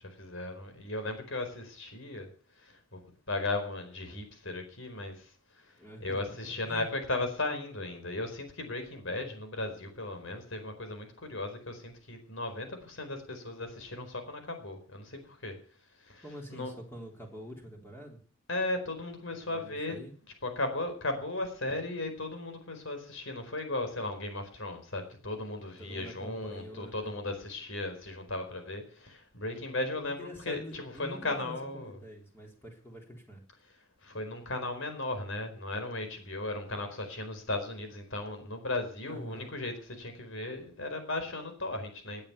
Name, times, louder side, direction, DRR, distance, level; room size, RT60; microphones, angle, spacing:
voice 1, 0.0-2.3 2.6-3.0 3.3-5.3 5.6-5.7 6.0-15.6 16.0-16.2 16.5-16.7 18.5-20.0 20.4-32.0 34.0-42.3, left 2 dB, 60° left, 6 dB, 4.6 m, -36 dB
voice 2, 5.8-6.9 16.2-18.2 19.4-20.1 25.8-27.1 30.1-33.4 39.1-39.5, equal, 10° left, 0 dB, 3.9 m, -46 dB
19.5 x 8.9 x 7.0 m, 0.42 s
head